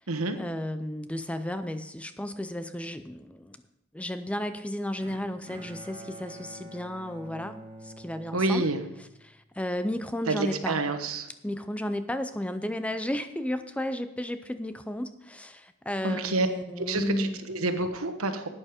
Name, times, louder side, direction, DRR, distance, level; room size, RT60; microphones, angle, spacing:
voice 1, 0.3-3.6 3.9-8.7 9.0-10.9 11.4-17.5, left 1 dB, 5° left, 10 dB, 0.4 m, -33 dB
Bowed string instrument, 5.0-9.2, equal, 25° right, 1.5 m, -46 dB
voice 2, 8.3-8.8 10.3-11.3 16.0-16.5 16.8-18.5, right 3 dB, 85° right, 7 dB, 1.2 m, -28 dB
11.5 x 8.7 x 5.1 m, 0.84 s
head